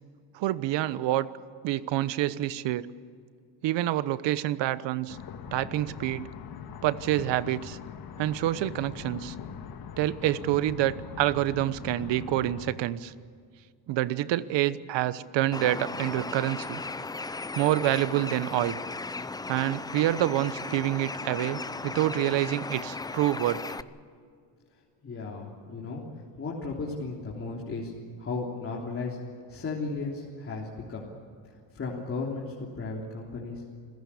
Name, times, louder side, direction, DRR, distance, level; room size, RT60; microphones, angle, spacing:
voice 1, 0.3-1.3 1.6-2.9 3.6-5.2 5.5-6.3 6.8-7.8 8.2-9.3 10.0-13.1 13.9-16.8 17.5-18.8 19.5-23.6, right 14 dB, 65° right, 16 dB, 1.1 m, -27 dB
sound 1, 5.1-12.7, left 7 dB, 50° left, 1.8 m, -42 dB
Bird, 15.5-23.8, left 3 dB, 10° left, 0.5 m, -36 dB
voice 2, 25.0-26.0 26.3-27.9 28.2-29.2 29.5-31.0 31.7-33.6, left 3 dB, 30° left, -3 dB, 3.4 m, -35 dB
27.0 x 16.0 x 8.5 m, 2.2 s
cardioid pair, 125°, 47 cm